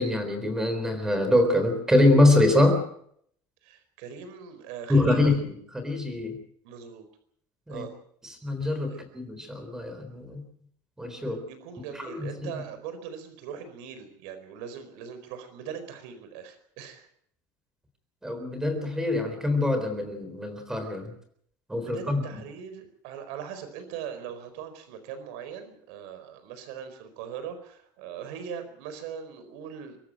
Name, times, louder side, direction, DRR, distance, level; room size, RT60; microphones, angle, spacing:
voice 1, 0.0-2.8 4.9-6.4 7.7-7.9 8.2-10.4 11.0-11.4 11.9-12.3 18.2-21.1 21.7-22.4, left 1 dB, 5° right, 7 dB, 3.9 m, -24 dB
voice 2, 3.6-5.2 6.6-7.1 7.7-7.9 8.9-9.0 11.2-17.1 21.8-30.0, right 7 dB, 90° right, 10 dB, 4.6 m, -40 dB
24.0 x 13.5 x 9.1 m, 0.68 s
cardioid pair, 165°, 8 cm